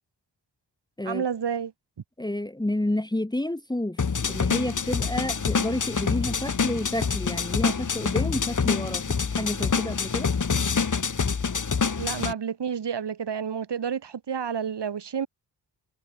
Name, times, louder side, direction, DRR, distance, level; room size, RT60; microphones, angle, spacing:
voice 1, 1.0-1.7 12.0-15.3, right 7 dB, 65° right, 4.5 m, -30 dB
voice 2, 2.2-4.0 4.3-10.3, left 1 dB, 10° left, 1.8 m, -30 dB
sound 1, 4.0-12.3, left 5 dB, 45° left, 3.5 m, -26 dB
wide cardioid pair, 125°, 44 cm